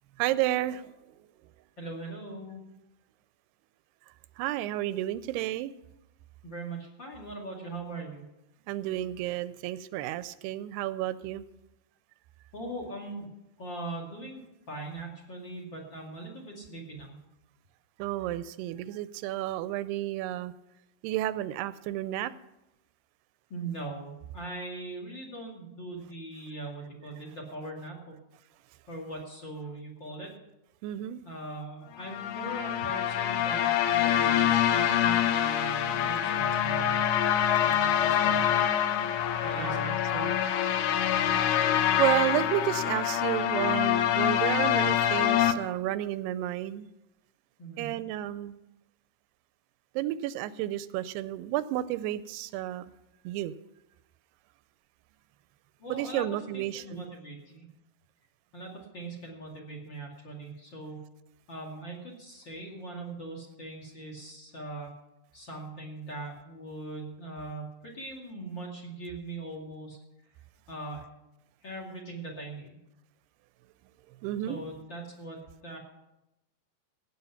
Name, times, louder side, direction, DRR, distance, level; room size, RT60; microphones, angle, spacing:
voice 1, 0.2-1.0 4.4-5.7 8.7-11.4 18.0-20.5 21.0-22.3 30.8-31.2 39.6-40.4 41.4-41.5 42.0-46.9 47.8-48.6 50.0-52.9 53.3-53.5 55.9-57.0 74.2-74.6, right 14 dB, 85° right, 2.6 m, -31 dB
voice 2, 1.8-2.6 6.4-8.2 12.5-13.3 13.6-14.4 14.7-17.2 23.5-28.2 28.9-30.3 31.2-37.0 37.6-38.6 39.4-40.2 47.6-47.9 55.8-56.3 56.5-57.6 58.5-61.1 61.5-64.9 65.3-70.0 70.7-71.0 71.6-72.8 74.5-75.8, right 2 dB, 35° left, 2.5 m, -40 dB
sound 1, 32.0-45.5, left 10 dB, 85° left, 1.7 m, -25 dB
16.5 x 9.3 x 5.8 m
omnidirectional pair, 4.6 m